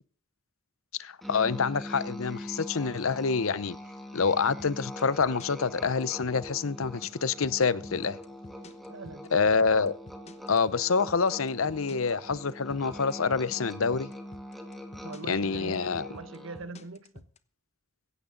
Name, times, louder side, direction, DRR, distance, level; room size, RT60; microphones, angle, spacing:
voice 1, 1.0-3.8 4.1-8.2 9.3-9.9 10.5-14.1 15.3-16.1, left 5 dB, 90° left, 0.8 m, -27 dB
Musical instrument, 1.2-16.8, equal, ahead, 2.3 m, -43 dB
sound 1, 4.6-17.4, left 2 dB, 35° left, 1.0 m, -49 dB
voice 2, 8.9-9.3 15.0-17.3, right 3 dB, 70° right, 1.2 m, -43 dB
17.0 x 15.5 x 3.9 m
head